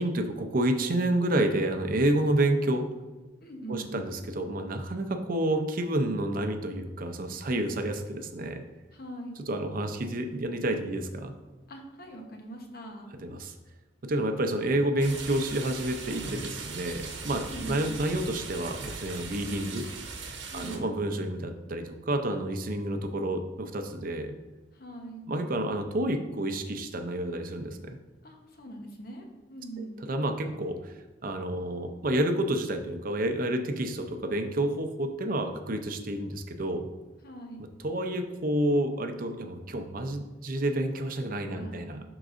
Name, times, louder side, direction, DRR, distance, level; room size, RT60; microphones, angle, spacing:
voice 1, 0.0-2.9 3.7-8.6 9.5-11.3 13.2-13.5 14.0-19.8 20.2-24.3 25.3-28.0 29.8-36.9 37.8-42.0, right 1 dB, 50° right, 6 dB, 0.6 m, -29 dB
voice 2, 3.4-3.9 8.9-9.4 11.7-13.1 17.4-17.9 20.5-21.0 24.7-25.3 28.2-30.0 37.2-37.6 41.5-42.0, right 2 dB, 55° left, 2 dB, 1.0 m, -42 dB
sound 1, 15.0-20.8, right 4 dB, 85° right, 1.0 m, -39 dB
11.0 x 3.9 x 2.6 m, 1.1 s
head